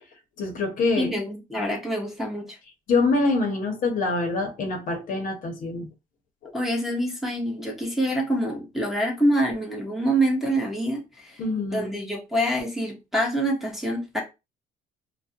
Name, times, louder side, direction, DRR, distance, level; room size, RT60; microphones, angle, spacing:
voice 1, 0.4-1.1 2.9-5.9 6.4-6.5 11.4-12.0, left 3 dB, 55° left, 0.7 m, -25 dB
voice 2, 1.0-2.6 6.5-11.4 11.7-14.2, right 1 dB, ahead, 0.8 m, -26 dB
2.2 x 2.1 x 2.7 m
cardioid pair, 110°, 17 cm